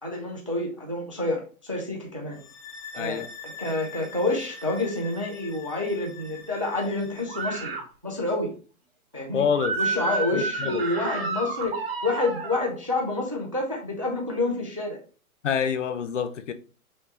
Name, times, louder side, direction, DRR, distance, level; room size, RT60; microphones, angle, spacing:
voice 1, 0.0-2.4 2.9-7.7 8.0-8.5 9.1-9.5 9.8-15.0, left 2 dB, 25° right, 0 dB, 0.4 m, -28 dB
sound 1, 2.3-7.7, left 5 dB, 30° left, 1.7 m, -44 dB
voice 2, 3.0-3.3 9.3-9.8 10.3-10.9 15.4-16.5, left 7 dB, 55° left, 11 dB, 0.6 m, -27 dB
sound 2, 7.3-7.8 9.5-12.7, right 3 dB, 45° right, 1.2 m, -30 dB
5.6 x 2.9 x 3.2 m, 0.38 s
hypercardioid pair, 170°, 43 cm